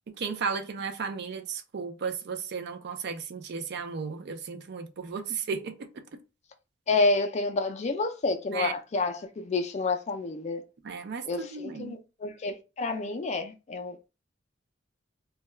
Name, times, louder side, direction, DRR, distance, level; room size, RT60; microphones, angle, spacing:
voice 1, 0.2-5.9 8.5-8.7 10.9-12.0, right 5 dB, 60° right, 0.4 m, -34 dB
voice 2, 6.9-10.6 11.3-14.0, left 3 dB, 35° left, 0.4 m, -29 dB
2.3 x 2.2 x 3.0 m
head